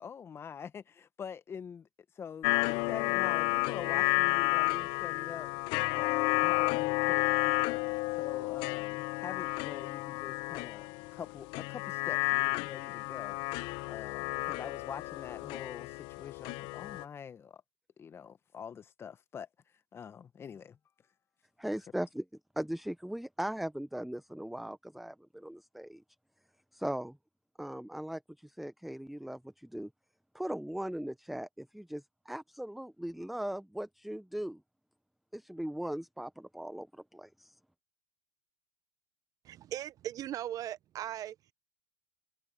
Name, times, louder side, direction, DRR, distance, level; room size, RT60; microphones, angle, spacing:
voice 1, 0.0-1.9 2.2-5.5 5.9-7.8 8.2-10.9 11.1-13.4 13.9-17.6 18.0-19.5 19.9-20.8, left 7 dB, 25° left, 1.4 m, -45 dB
sound 1, 2.4-17.0, left 24 dB, 50° left, 0.8 m, -31 dB
voice 2, 21.6-22.2 22.6-26.0 26.7-27.2 27.6-29.9 30.3-34.6 35.3-37.5, right 1 dB, ahead, 0.8 m, -39 dB
voice 3, 39.4-41.4, right 12 dB, 35° right, 0.7 m, -38 dB
hypercardioid pair, 110°, 10 cm